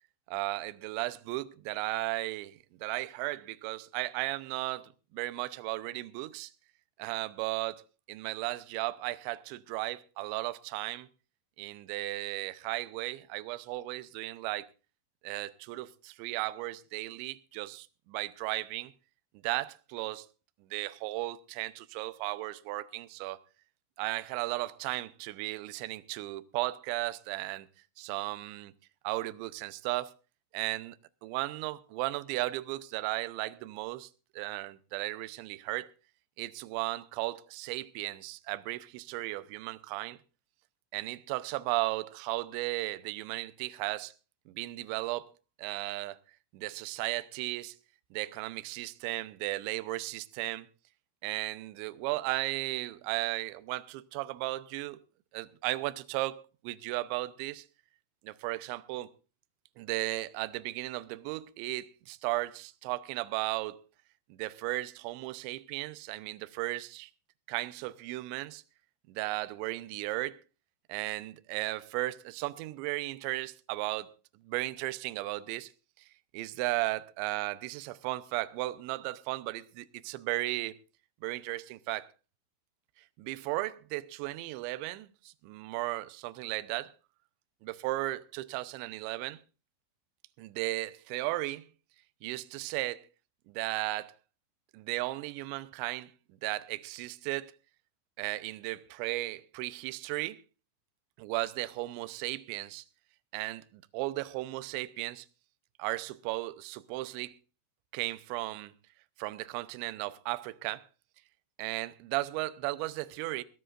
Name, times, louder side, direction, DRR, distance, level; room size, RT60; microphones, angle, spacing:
voice 1, 0.3-6.5 7.0-7.8 8.1-11.1 11.6-14.7 15.2-18.9 19.4-20.3 20.7-23.4 24.0-27.7 28.0-28.7 29.0-30.1 30.5-31.0 31.2-34.1 34.4-35.9 36.4-40.2 40.9-44.1 44.5-45.3 45.6-46.2 46.5-47.8 48.1-50.7 51.2-55.0 55.3-57.7 58.2-59.1 59.8-63.8 64.3-67.1 67.5-68.6 69.1-70.4 70.9-74.1 74.4-75.7 76.0-76.1 76.3-80.8 81.2-82.1 83.2-86.9 87.6-89.4 90.4-91.7 92.2-93.0 93.5-94.1 94.7-97.5 98.2-100.4 101.2-102.8 103.3-105.3 105.8-107.4 107.9-108.7 109.2-110.9 111.6-113.4, right 19 dB, 80° right, 2.7 m, -35 dB
22.0 x 15.0 x 2.5 m
omnidirectional pair, 6.0 m